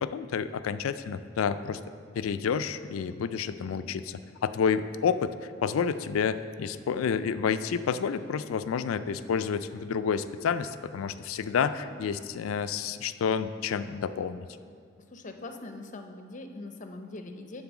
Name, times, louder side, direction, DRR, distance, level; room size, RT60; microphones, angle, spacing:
voice 1, 0.0-1.8 2.2-5.3 5.6-14.5, left 6 dB, 85° left, 12 dB, 0.4 m, -29 dB
voice 2, 11.6-11.9 15.1-17.6, left 2 dB, 40° left, 6 dB, 0.6 m, -42 dB
9.7 x 3.9 x 7.1 m, 2.2 s
head